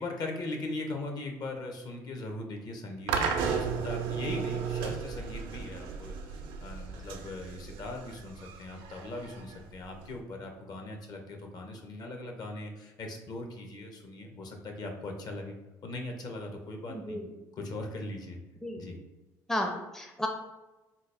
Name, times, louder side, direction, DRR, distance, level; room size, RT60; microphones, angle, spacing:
voice 1, 0.0-15.5 15.8-17.2 17.5-18.4 18.8-19.0, left 2 dB, 55° left, 3 dB, 0.7 m, -40 dB
sound 1, 3.1-10.2, right 6 dB, 80° right, 0.5 m, -34 dB
voice 2, 16.9-17.2 18.6-18.9 19.5-20.3, left 1 dB, 5° left, 3 dB, 0.4 m, -33 dB
3.8 x 2.0 x 3.3 m, 1.1 s
supercardioid pair, 80°, 8 cm